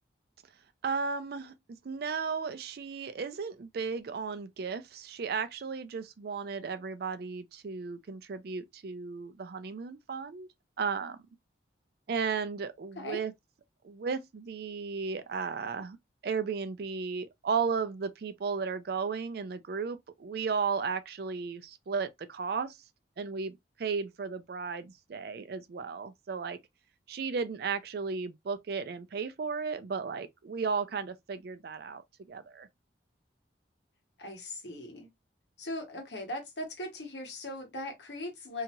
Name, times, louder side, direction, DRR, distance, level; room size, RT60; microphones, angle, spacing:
voice 1, 0.8-1.5 1.8-10.5 10.8-11.2 12.1-13.3 13.8-16.0 16.2-22.8 23.2-26.6 27.1-32.0 32.3-32.7, right 5 dB, 55° right, 0.4 m, -34 dB
voice 2, 34.2-35.1 35.6-38.6, left 1 dB, 65° left, 1.2 m, -39 dB
2.8 x 2.3 x 2.9 m
head